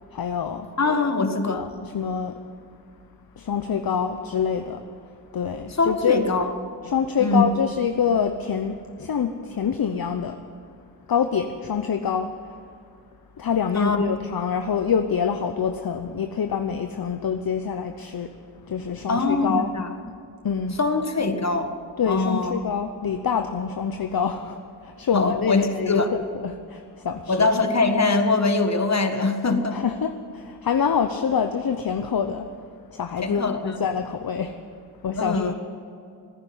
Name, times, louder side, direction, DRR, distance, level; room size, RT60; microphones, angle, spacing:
voice 1, 0.1-0.7 1.5-1.7 1.9-2.4 3.4-4.8 5.3-6.2 6.9-10.4 11.1-12.3 13.4-18.3 18.7-19.7 20.4-20.8 22.0-27.5 29.7-32.5 32.9-34.6 35.0-35.5, left 7 dB, 55° left, 7 dB, 0.8 m, -26 dB
voice 2, 0.8-1.6 5.8-6.5 7.2-7.4 13.7-14.0 19.1-19.9 20.8-21.7 22.1-22.5 25.1-26.1 27.3-29.8 33.2-33.8 35.2-35.5, left 3 dB, 40° left, 7 dB, 1.6 m, -22 dB
15.0 x 9.8 x 9.5 m, 2.4 s
cardioid pair, 60°, 42 cm